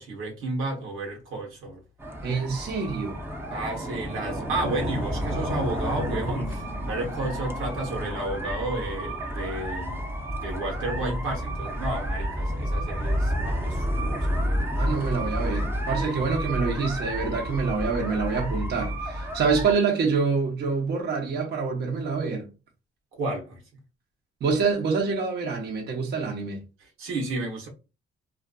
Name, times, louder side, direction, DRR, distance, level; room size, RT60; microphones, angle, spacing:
voice 1, 0.0-1.8 3.5-10.1 10.4-14.9 23.1-23.6 27.0-27.7, right 2 dB, 90° right, 1.0 m, -32 dB
sound 1, 2.0-19.7, equal, 10° right, 0.6 m, -30 dB
voice 2, 2.2-3.2 14.8-22.5 24.4-26.6, right 5 dB, 55° right, 0.8 m, -26 dB
2.5 x 2.5 x 2.2 m
cardioid pair, 90°, 20 cm